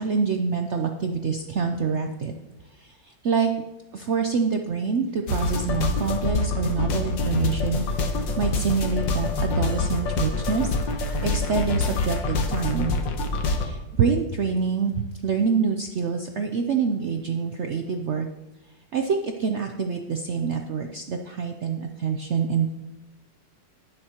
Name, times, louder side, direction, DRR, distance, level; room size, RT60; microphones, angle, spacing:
voice 1, 0.0-2.3 3.2-3.5 3.9-7.8 8.4-12.9 13.5-18.3 18.9-22.7, right 5 dB, 80° right, 4 dB, 0.6 m, -26 dB
sound 1, 5.3-13.7, left 3 dB, 90° left, 1.7 m, -26 dB
18.5 x 6.5 x 2.9 m, 1.0 s
omnidirectional pair, 2.0 m